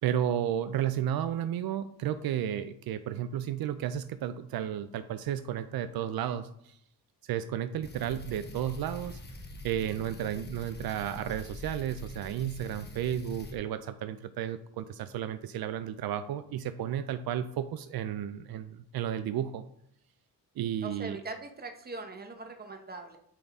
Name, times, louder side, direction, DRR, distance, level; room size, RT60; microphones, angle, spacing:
voice 1, 0.0-6.8 7.2-9.2 9.6-19.6 20.6-21.2, right 10 dB, 70° right, 11 dB, 0.5 m, -33 dB
sound 1, 7.8-13.6, left 1 dB, 25° left, 1.1 m, -44 dB
voice 2, 20.8-23.2, right 3 dB, 25° right, 5 dB, 1.0 m, -41 dB
8.9 x 4.0 x 3.5 m, 0.70 s
cardioid pair, 105°, 37 cm